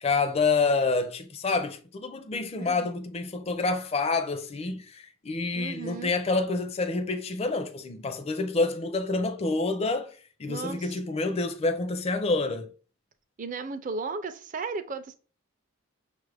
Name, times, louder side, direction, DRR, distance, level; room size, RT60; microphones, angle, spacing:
voice 1, 0.0-12.7, left 3 dB, 30° left, 0.4 m, -28 dB
voice 2, 2.5-2.9 5.5-6.2 10.5-11.0 13.4-15.2, right 4 dB, 40° right, 0.4 m, -35 dB
6.1 x 2.5 x 3.3 m
head